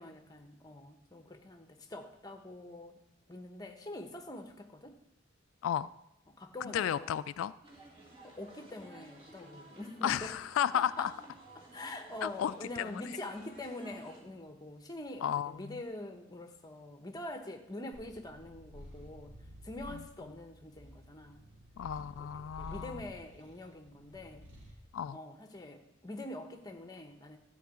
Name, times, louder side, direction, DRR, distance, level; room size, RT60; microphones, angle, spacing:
voice 1, 0.0-3.0 3.3-5.0 6.3-7.2 8.2-10.4 10.7-11.2 11.5-19.4 19.6-21.4 22.2-24.4 25.1-27.4, left 1 dB, 20° left, 5 dB, 1.0 m, -45 dB
voice 2, 6.6-7.5 10.0-11.1 12.2-13.0 15.2-15.8 19.9-20.0 21.8-23.1 24.9-25.2, left 9 dB, 90° left, 15 dB, 0.3 m, -33 dB
sound 1, 7.6-14.2, right 1 dB, 30° right, 2.1 m, -55 dB
Purr, 17.9-24.8, equal, 60° right, 2.4 m, -52 dB
12.5 x 4.6 x 8.2 m, 0.87 s
head